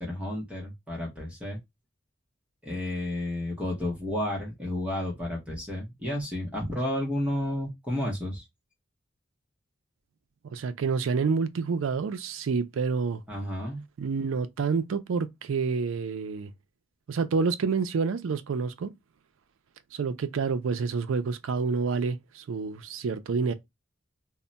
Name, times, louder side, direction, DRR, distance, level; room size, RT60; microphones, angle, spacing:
voice 1, 0.0-1.6 2.6-8.4 13.3-13.8, left 1 dB, 5° right, 0.7 m, -31 dB
voice 2, 10.5-13.2 14.0-16.5 17.1-18.9 19.9-23.5, right 5 dB, 85° right, 0.4 m, -28 dB
2.2 x 2.1 x 3.8 m
head